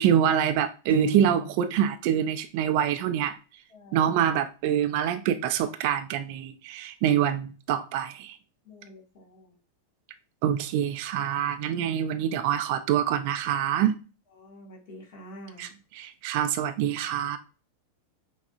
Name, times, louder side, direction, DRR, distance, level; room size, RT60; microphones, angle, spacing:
voice 1, 0.0-3.3 3.9-8.3 10.4-14.0 15.6-17.4, right 10 dB, 45° right, 0.4 m, -25 dB
Piano, 0.9-1.9, equal, 85° right, 0.6 m, -32 dB
voice 2, 3.7-4.1 8.6-9.5 14.4-15.7, equal, 45° left, 1.7 m, -47 dB
5.8 x 2.1 x 2.4 m
figure-of-eight pair, 90°, 0 cm